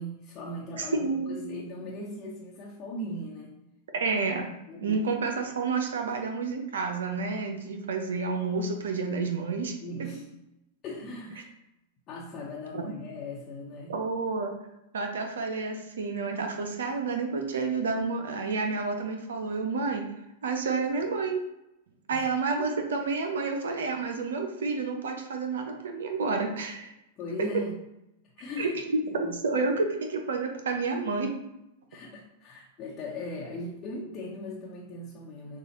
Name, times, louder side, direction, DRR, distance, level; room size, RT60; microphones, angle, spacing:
voice 1, 0.0-3.6 4.7-5.0 9.8-10.3 10.8-11.5 12.1-14.0 22.1-22.3 27.2-27.7 28.4-28.7 29.1-29.6 31.9-35.6, left 1 dB, 40° left, -4 dB, 1.0 m, -39 dB
voice 2, 0.8-1.4 3.9-4.5 4.8-9.7 12.7-12.8 13.9-14.5 14.9-20.0 20.4-21.4 22.1-26.9 28.6-28.7 29.1-31.3, right 4 dB, 75° right, 4 dB, 0.6 m, -30 dB
6.7 x 2.4 x 3.0 m, 0.90 s
hypercardioid pair, 100°, 0 cm